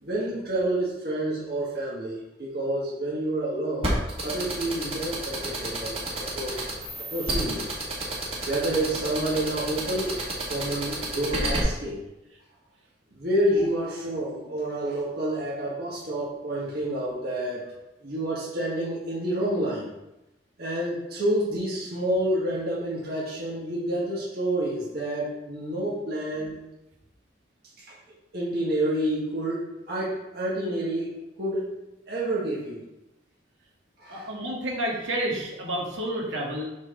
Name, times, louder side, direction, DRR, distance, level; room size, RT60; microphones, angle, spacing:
voice 1, 0.0-6.6 7.0-7.6 8.4-10.2 10.5-12.0 13.1-17.7 18.0-19.9 20.6-26.6 27.8-28.0 28.3-31.7 32.1-32.8 34.0-34.3, right 1 dB, 50° right, -7 dB, 1.6 m, -29 dB
sound 1, 3.8-11.6, right 2 dB, 30° right, 1.7 m, -30 dB
voice 2, 34.1-36.7, right 1 dB, 75° right, -2 dB, 2.0 m, -30 dB
6.3 x 6.1 x 3.8 m, 0.93 s
head